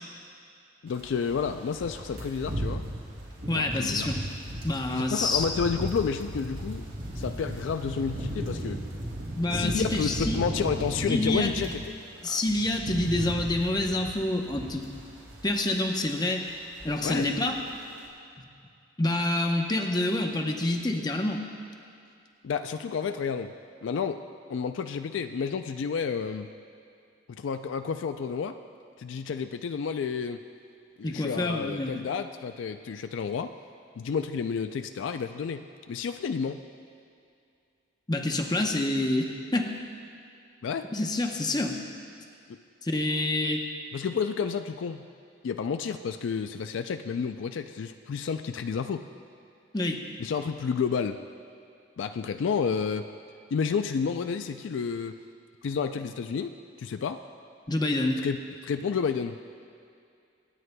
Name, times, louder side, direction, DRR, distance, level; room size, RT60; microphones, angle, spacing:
voice 1, 0.8-2.9 3.5-4.1 4.9-6.9 7.1-8.8 9.5-12.0 12.3-12.4 17.0-17.3 22.4-23.5 23.8-24.2 24.5-26.5 27.3-28.6 29.0-30.4 31.0-33.5 34.0-36.6 40.6-40.9 42.5-42.6 43.9-45.1 45.4-49.1 50.2-51.2 52.0-53.1 53.5-55.2 55.6-57.2 58.2-59.4, left 6 dB, 70° left, 8 dB, 0.3 m, -30 dB
sound 1, 0.9-11.9 12.2-15.6 15.9-16.2 16.5-17.3 17.6-17.8, right 1 dB, 70° right, 2.8 m, -36 dB
voice 2, 3.5-4.3 4.6-5.4 9.3-10.5 11.1-11.6 12.2-14.9 15.4-16.5 16.8-17.6 19.0-21.4 31.0-32.0 38.1-39.8 40.9-41.8 42.8-43.6 49.7-50.0 57.7-58.3, left 2 dB, 20° left, 3 dB, 0.8 m, -27 dB
26.5 x 9.3 x 2.2 m, 2.5 s
head